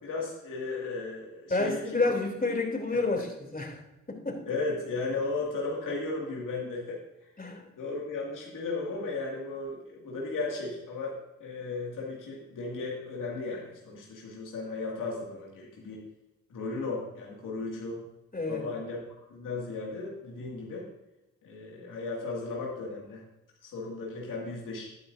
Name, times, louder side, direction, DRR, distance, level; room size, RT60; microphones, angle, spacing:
voice 1, 0.0-2.1 2.9-3.0 4.4-7.0 7.8-16.0 16.5-18.0 18.5-19.0 19.3-20.9 21.4-23.2 23.6-24.9, left 3 dB, 80° left, -3 dB, 2.2 m, -35 dB
voice 2, 1.5-3.8 4.1-4.4 7.4-7.6 18.3-18.6, left 3 dB, 30° left, 2 dB, 3.0 m, -29 dB
13.5 x 8.6 x 2.6 m, 0.93 s
supercardioid pair, 40°, 32 cm